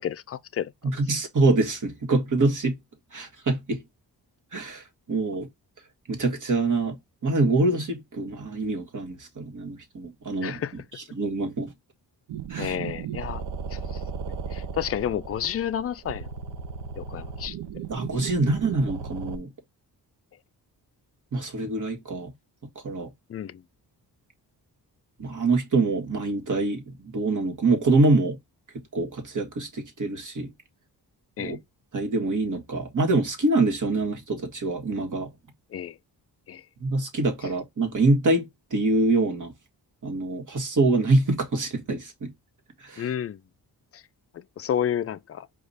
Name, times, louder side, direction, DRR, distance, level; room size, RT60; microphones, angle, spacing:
voice 1, 0.0-0.9 10.4-10.7 12.6-13.4 13.7-14.0 14.5-16.3 17.0-17.6 23.3-23.6 31.4-31.6 35.7-36.0 36.5-36.6 43.0-43.4 43.9-44.0 44.3-45.5, left 9 dB, 35° left, 0.4 m, -31 dB
voice 2, 0.8-2.8 3.1-3.8 4.5-5.5 6.1-7.0 7.2-10.6 11.1-11.7 12.5-12.7 17.9-19.5 21.3-22.3 22.8-23.1 25.2-28.4 28.9-30.5 31.4-31.6 31.9-35.3 36.8-39.5 40.0-42.3 42.8-43.1, right 2 dB, 50° right, 1.6 m, -25 dB
sound 1, 12.3-19.4, right 6 dB, 80° right, 0.7 m, -35 dB
5.0 x 2.5 x 4.0 m
cardioid pair, 85°, 40 cm